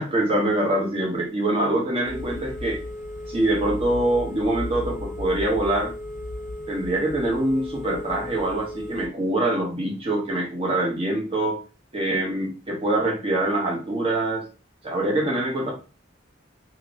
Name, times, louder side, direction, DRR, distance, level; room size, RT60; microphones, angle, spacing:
voice 1, 0.0-2.8 3.3-5.9 6.7-11.6 11.9-14.5 14.8-15.7, right 1 dB, 30° right, -1 dB, 1.0 m, -24 dB
Telephone, 2.1-9.1, left 1 dB, 40° left, 0.5 m, -35 dB
2.9 x 2.6 x 3.0 m, 0.33 s
head